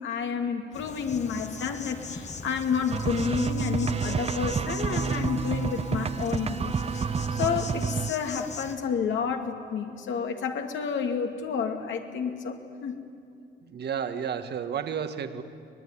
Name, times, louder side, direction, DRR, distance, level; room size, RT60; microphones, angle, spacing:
voice 1, 0.0-13.0, left 6 dB, 70° left, 4 dB, 2.4 m, -30 dB
Insect, 0.7-8.8, left 4 dB, 35° left, 1.6 m, -41 dB
sound 1, 2.9-8.1, right 6 dB, 30° right, 0.6 m, -29 dB
voice 2, 13.6-15.4, right 7 dB, 55° right, 9 dB, 1.6 m, -32 dB
24.0 x 19.5 x 9.9 m, 2.3 s
cardioid pair, 90°, 20 cm